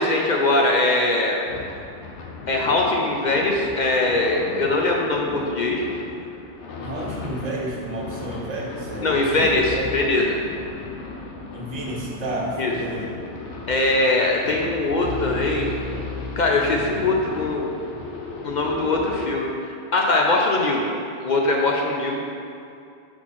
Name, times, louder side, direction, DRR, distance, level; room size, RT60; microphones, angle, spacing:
voice 1, 0.0-1.4 2.5-5.8 9.0-10.4 12.6-12.7 13.7-15.7 16.4-17.7 18.4-20.9 21.2-22.2, left 2 dB, 55° left, -1 dB, 0.5 m, -21 dB
sound 1, 1.4-19.3, left 3 dB, 85° left, 1.1 m, -35 dB
voice 2, 6.8-9.8 11.5-13.1, right 2 dB, 40° right, -3 dB, 1.0 m, -31 dB
6.1 x 4.3 x 4.3 m, 2.5 s
omnidirectional pair, 1.2 m